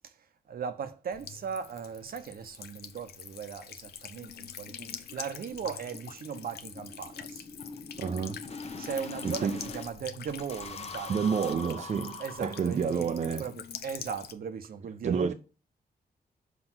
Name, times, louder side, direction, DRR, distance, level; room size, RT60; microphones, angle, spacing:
voice 1, 0.5-7.4 8.8-11.5 11.8-11.9 12.2-13.1 13.4-13.5 13.8-15.3, right 7 dB, 70° right, 0.9 m, -38 dB
Buzz / Water tap faucet / Trickle dribble, 1.1-14.3, left 8 dB, 90° left, 0.7 m, -45 dB
sound 1, 3.0-3.1 3.4-3.5 3.9-4.0 4.3-4.4 4.7-9.9 10.3-13.1, left 4 dB, 40° left, 1.0 m, -43 dB
voice 2, 8.0-8.4 9.2-9.7 11.1-13.5 15.0-15.3, right 6 dB, 45° right, 0.6 m, -29 dB
6.0 x 5.0 x 6.2 m
wide cardioid pair, 115°, 16 cm